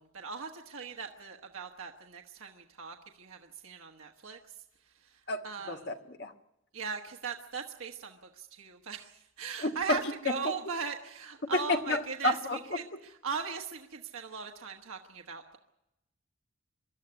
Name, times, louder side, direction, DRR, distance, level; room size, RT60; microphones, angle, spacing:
voice 1, 0.0-5.9 6.7-15.6, right 5 dB, 90° right, 2 dB, 1.3 m, -39 dB
voice 2, 5.3-6.3 9.6-10.0 11.7-12.6, left 1 dB, 55° left, 4 dB, 1.6 m, -31 dB
24.5 x 13.0 x 9.8 m, 0.91 s
head